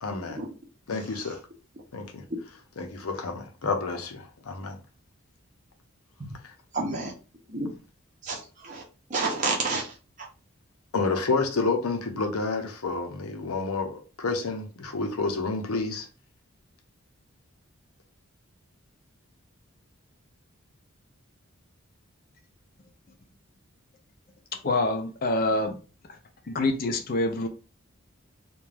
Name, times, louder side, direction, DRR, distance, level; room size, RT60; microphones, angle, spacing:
voice 1, 0.0-0.4 0.9-1.4 1.9-2.2 2.8-4.8 6.4-6.5 10.9-16.1, left 3 dB, 90° left, 0.6 m, -29 dB
voice 2, 6.7-7.1 7.5-7.7 8.2-8.8 9.1-9.9, right 3 dB, 35° right, 0.6 m, -29 dB
voice 3, 24.6-25.8 26.5-27.5, left 2 dB, 45° left, 0.5 m, -26 dB
2.5 x 2.2 x 3.2 m
head